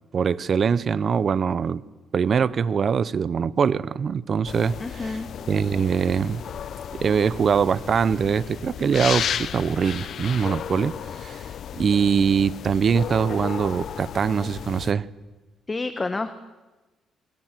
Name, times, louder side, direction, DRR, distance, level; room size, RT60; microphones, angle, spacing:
voice 1, 0.1-1.8 2.1-5.2 5.5-6.4 7.0-10.9 11.2-11.4 11.8-15.1, right 6 dB, 50° right, 17 dB, 0.9 m, -23 dB
sound 1, 4.5-14.9, left 9 dB, 65° left, 0.9 m, -34 dB
voice 2, 4.8-5.3 15.7-16.3, left 3 dB, 25° left, 10 dB, 1.4 m, -29 dB
28.5 x 22.5 x 7.7 m, 1.2 s
cardioid pair, 90°, 0 cm